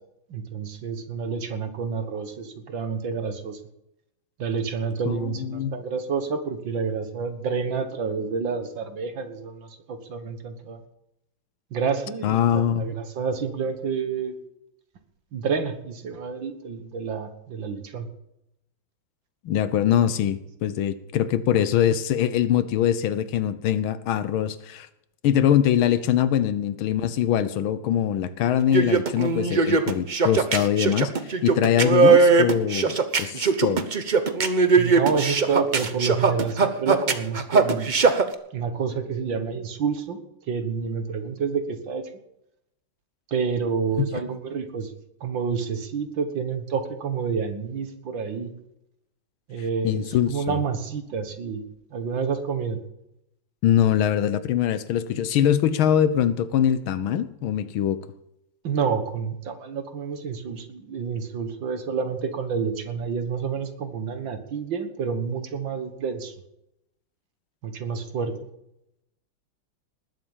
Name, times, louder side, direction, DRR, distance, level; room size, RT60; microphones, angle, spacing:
voice 1, 0.3-3.6 4.4-10.8 11.7-14.4 15.3-18.1 34.8-38.0 38.5-40.2 40.5-42.1 43.3-44.9 45.2-48.5 49.5-51.6 51.9-52.8 58.6-66.3 67.6-68.3, right 5 dB, 65° right, 8 dB, 2.2 m, -29 dB
voice 2, 5.1-5.8 12.2-12.9 19.4-24.9 25.2-33.9 44.0-44.1 49.8-50.6 53.6-58.0, left 10 dB, 75° left, 14 dB, 1.6 m, -23 dB
sound 1, 28.6-38.2, right 4 dB, 40° right, 0.7 m, -20 dB
19.5 x 7.9 x 7.3 m, 0.83 s
omnidirectional pair, 2.3 m